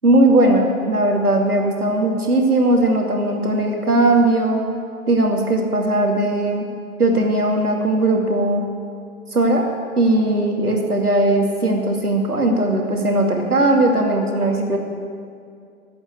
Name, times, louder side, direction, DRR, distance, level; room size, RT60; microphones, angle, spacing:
voice 1, 0.0-4.6 5.1-6.7 7.0-8.7 9.3-9.7 10.0-14.8, right 1 dB, 90° right, 1 dB, 2.5 m, -18 dB
14.0 x 8.6 x 9.6 m, 2.3 s
figure-of-eight pair, 115°, 44 cm